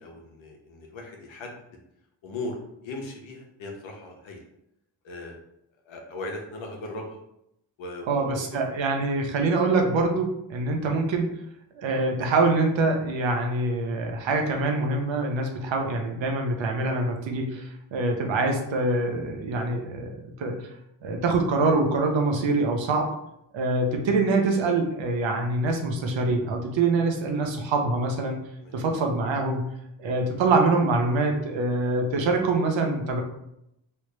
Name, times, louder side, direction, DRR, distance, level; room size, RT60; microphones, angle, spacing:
voice 1, 0.0-1.5 2.2-4.5 5.0-5.4 5.9-7.2 7.8-8.5 28.6-28.8, left 2 dB, 85° left, 2 dB, 0.8 m, -38 dB
voice 2, 8.1-11.3 11.7-20.7 21.0-23.1 23.5-29.7 30.0-33.2, right 3 dB, 75° right, 3 dB, 0.8 m, -25 dB
3.2 x 2.4 x 3.2 m, 0.80 s
supercardioid pair, 45°, 45 cm